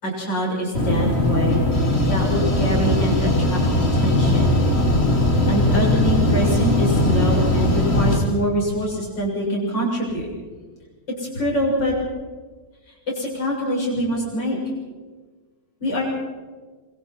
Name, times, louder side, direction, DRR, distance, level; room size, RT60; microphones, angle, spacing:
voice 1, 0.0-1.6 2.1-3.6 3.9-4.4 5.5-10.3 11.2-11.9 13.1-14.6 15.8-16.0, right 1 dB, 80° left, -3 dB, 7.5 m, -24 dB
sound 1, 0.7-8.2, left 1 dB, 35° left, 3.4 m, -19 dB
25.5 x 24.5 x 4.4 m, 1.4 s
omnidirectional pair, 1.9 m